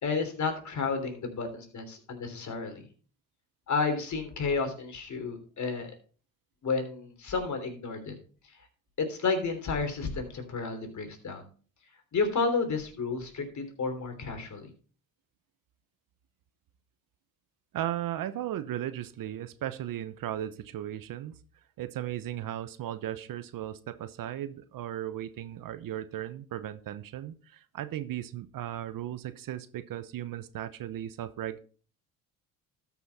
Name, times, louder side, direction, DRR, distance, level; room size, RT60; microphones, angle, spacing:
voice 1, 0.0-2.8 3.7-5.9 6.6-8.1 9.0-11.4 12.1-14.7, left 4 dB, 45° left, 6 dB, 3.3 m, -31 dB
voice 2, 17.7-21.3 21.8-31.6, right 12 dB, 55° right, 13 dB, 0.9 m, -36 dB
13.0 x 6.2 x 4.1 m, 0.41 s
supercardioid pair, 75°, 39 cm